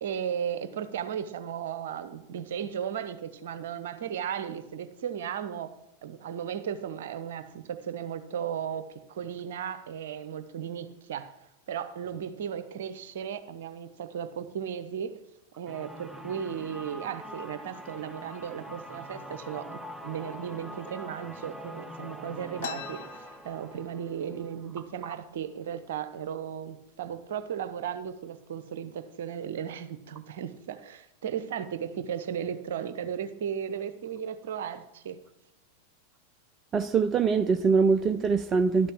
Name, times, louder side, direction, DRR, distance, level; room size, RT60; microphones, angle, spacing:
voice 1, 0.0-5.7 6.0-11.3 11.7-15.1 15.6-35.2, right 8 dB, 55° right, 0.8 m, -35 dB
sound 1, 15.7-25.4, equal, ahead, 0.9 m, -44 dB
sound 2, 22.6-24.2 24.6-24.7 24.9-25.5 26.1-26.3 27.0-27.2 27.6-28.1, left 14 dB, 55° left, 0.5 m, -43 dB
voice 2, 36.7-38.9, right 5 dB, 25° right, 0.5 m, -23 dB
11.0 x 6.7 x 7.0 m
figure-of-eight pair, 90°, 0 cm